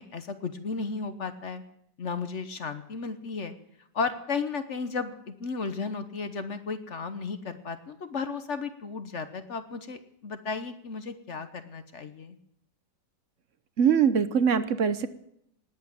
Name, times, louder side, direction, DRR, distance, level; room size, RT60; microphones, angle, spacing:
voice 1, 0.0-1.6 2.0-3.5 3.9-12.4, left 4 dB, 45° left, 10 dB, 1.2 m, -34 dB
voice 2, 13.8-15.1, right 7 dB, 55° right, 13 dB, 0.9 m, -22 dB
19.0 x 8.2 x 8.8 m, 0.74 s
omnidirectional pair, 1.9 m